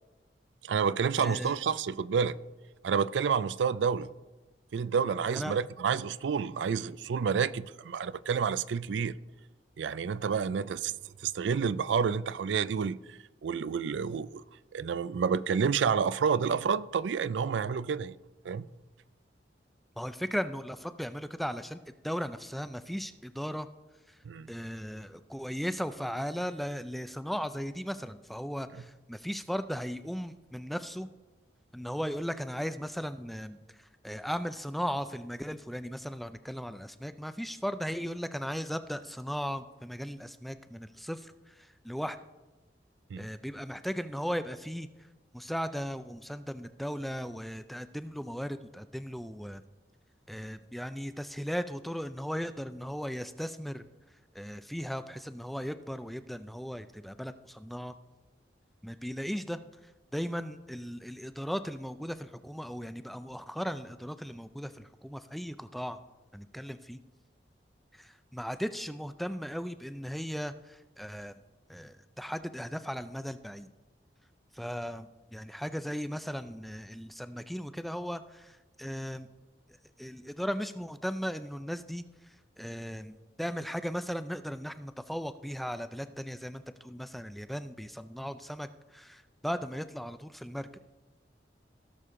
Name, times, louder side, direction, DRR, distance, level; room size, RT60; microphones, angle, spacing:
voice 1, 0.6-2.4 2.8-4.1 4.7-9.2 9.8-10.9 11.2-14.4 14.7-18.2 18.4-18.7 24.3-24.5 43.1-43.3, right 6 dB, 85° right, 0.4 m, -29 dB
voice 2, 1.2-1.5 5.3-5.6 20.0-23.7 24.1-24.2 24.5-31.1 31.7-42.2 43.2-45.1 45.3-49.6 50.3-53.8 54.3-57.9 58.8-59.6 60.1-66.0 66.3-67.0 67.9-71.4 71.7-73.7 74.5-79.3 80.0-90.7, equal, ahead, 0.3 m, -37 dB
17.0 x 6.7 x 3.7 m
head